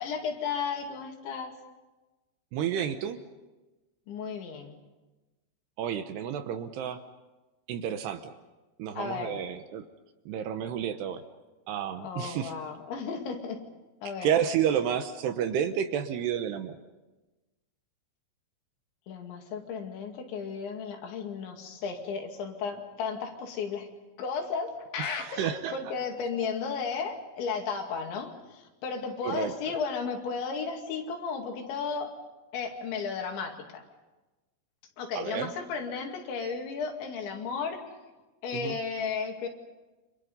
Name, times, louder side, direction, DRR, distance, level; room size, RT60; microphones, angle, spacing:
voice 1, 0.0-1.5 4.1-4.8 9.0-9.4 12.0-13.6 14.0-14.3 19.1-23.9 24.2-32.1 32.5-33.8 35.0-37.8 38.4-39.5, left 5 dB, 75° left, 3 dB, 4.7 m, -34 dB
voice 2, 2.5-3.2 5.8-7.0 7.7-8.3 8.8-9.8 10.3-11.2 11.7-12.5 14.2-16.8 25.0-25.8 29.2-29.5 35.2-35.5 38.5-38.8, right 9 dB, 70° right, 8 dB, 2.8 m, -30 dB
29.5 x 26.0 x 5.5 m, 1.1 s
omnidirectional pair, 5.4 m